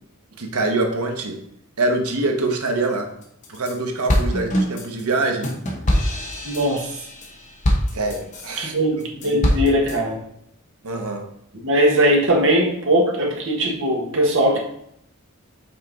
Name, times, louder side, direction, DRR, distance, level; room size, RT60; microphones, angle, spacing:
voice 1, 0.4-1.4 1.8-3.1 3.5-5.5 7.9-8.7 9.2-9.6 10.8-11.3, right 2 dB, 85° right, 3 dB, 1.0 m, -24 dB
sound 1, 3.2-3.7 4.1-8.6 9.0-10.0, equal, 35° left, 0.9 m, -23 dB
voice 2, 6.4-7.0 8.6-10.2 11.6-14.7, equal, 60° right, -1 dB, 1.4 m, -20 dB
5.7 x 4.4 x 4.0 m, 0.73 s
head